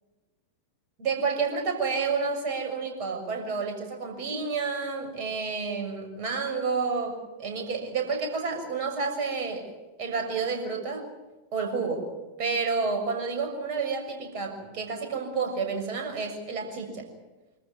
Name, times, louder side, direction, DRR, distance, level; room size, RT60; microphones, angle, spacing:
voice 1, 1.0-9.7 10.0-11.0 11.5-12.1 12.4-17.1, right 4 dB, 45° right, 3 dB, 6.5 m, -30 dB
26.0 x 14.0 x 9.6 m, 1.2 s
figure-of-eight pair, 90°, 0 cm